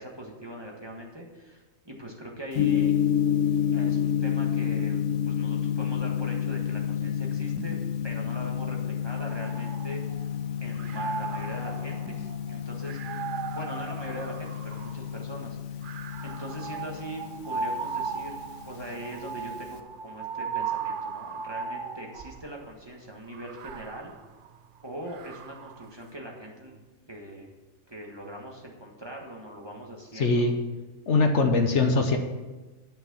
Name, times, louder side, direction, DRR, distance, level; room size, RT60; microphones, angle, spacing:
voice 1, 0.0-3.0 3.7-7.8 8.0-10.2 10.6-12.1 12.5-15.8 16.2-18.4 18.6-24.1 24.8-26.8 27.1-27.5 27.9-30.4, equal, 20° right, -1 dB, 1.5 m, -41 dB
Gong, 2.5-19.8, left 9 dB, 85° left, 1.2 m, -30 dB
sound 1, 9.2-10.4 10.8-15.1 15.8-22.5 23.3-25.9, right 5 dB, 65° right, 0.5 m, -37 dB
voice 2, 30.1-30.5 31.1-32.2, left 3 dB, 60° left, 4 dB, 1.2 m, -22 dB
10.5 x 5.7 x 6.9 m, 1.2 s
omnidirectional pair, 1.4 m